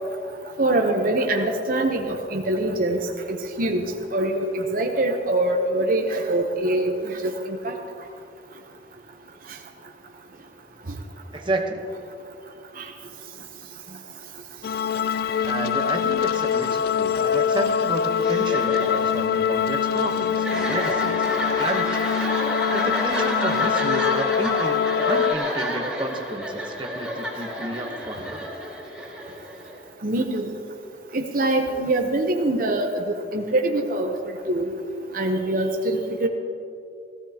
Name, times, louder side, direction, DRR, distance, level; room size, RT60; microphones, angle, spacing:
voice 1, 0.6-3.0 3.3-3.8 4.1-7.8 12.8-12.9 30.0-30.6 31.1-34.1 34.5-34.7 35.1-36.3, right 1 dB, 50° right, 3 dB, 0.8 m, -24 dB
voice 2, 11.3-11.9 15.4-28.5, right 1 dB, 25° right, 2 dB, 1.0 m, -31 dB
sound 1, 14.6-25.4, left 8 dB, 55° left, 0.3 m, -24 dB
sound 2, 18.2-29.9, equal, 5° right, 3.1 m, -30 dB
17.5 x 15.0 x 2.9 m, 2.7 s
head